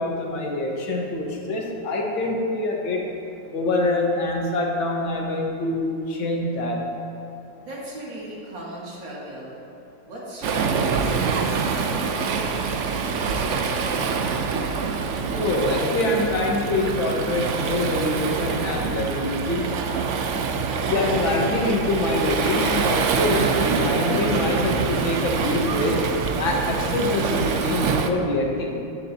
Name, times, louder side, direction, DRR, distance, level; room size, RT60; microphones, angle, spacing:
voice 1, 0.0-3.0 3.5-6.9 15.3-19.7 20.3-20.5 20.8-26.0 26.4-28.8, left 2 dB, 80° left, -1 dB, 2.2 m, -25 dB
voice 2, 7.6-9.5 10.1-13.6, right 1 dB, 70° right, -6 dB, 3.2 m, -36 dB
Waves surf, 10.4-28.1, right 5 dB, 85° right, 0.6 m, -25 dB
14.0 x 11.0 x 2.8 m, 2.7 s
omnidirectional pair, 2.1 m